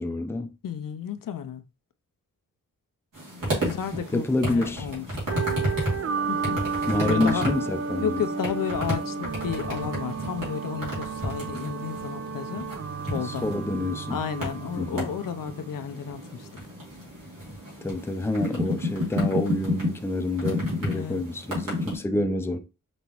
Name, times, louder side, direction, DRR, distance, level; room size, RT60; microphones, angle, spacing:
voice 1, 0.0-0.5 3.4-3.8 4.1-4.9 6.9-8.2 13.2-14.2 14.8-15.1 17.8-22.6, left 2 dB, 5° left, 0.5 m, -28 dB
voice 2, 0.6-1.6 3.6-5.1 5.3-5.7 6.3-6.7 7.0-7.5 8.0-12.7 13.0-13.4 14.1-16.5 20.9-21.2, left 8 dB, 75° left, 0.6 m, -32 dB
sound 1, 3.1-21.9, left 1 dB, 75° right, 2.5 m, -32 dB
sound 2, 5.3-16.3, right 5 dB, 45° right, 0.5 m, -33 dB
5.4 x 3.0 x 2.9 m
wide cardioid pair, 80°, 33 cm